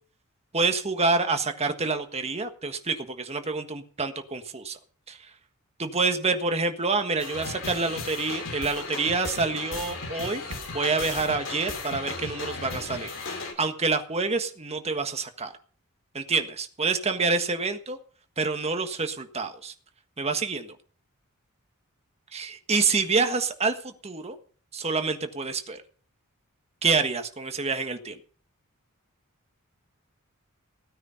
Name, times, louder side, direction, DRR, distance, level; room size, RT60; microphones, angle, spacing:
voice 1, 0.5-4.8 5.1-5.2 5.8-10.4 10.7-15.5 16.1-18.0 18.4-19.7 20.2-20.8 22.3-24.4 24.7-25.8 26.8-28.2, right 4 dB, 30° right, 7 dB, 1.4 m, -27 dB
sound 1, 7.2-13.5, left 3 dB, 60° left, 3.4 m, -35 dB
16.5 x 9.5 x 5.7 m, 0.43 s
head